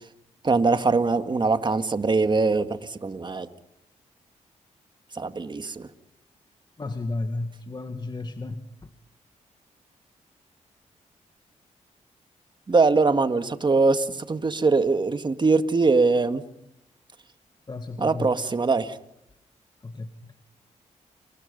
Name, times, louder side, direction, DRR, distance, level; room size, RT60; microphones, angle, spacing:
voice 1, 0.4-3.5 5.1-5.9 12.7-16.4 18.0-19.0, right 3 dB, 35° right, 9 dB, 1.9 m, -22 dB
voice 2, 6.8-8.9 17.7-18.3 19.8-20.3, left 2 dB, 35° left, 7 dB, 1.9 m, -33 dB
28.5 x 28.5 x 5.4 m, 0.76 s
cardioid pair, 85°, 13 cm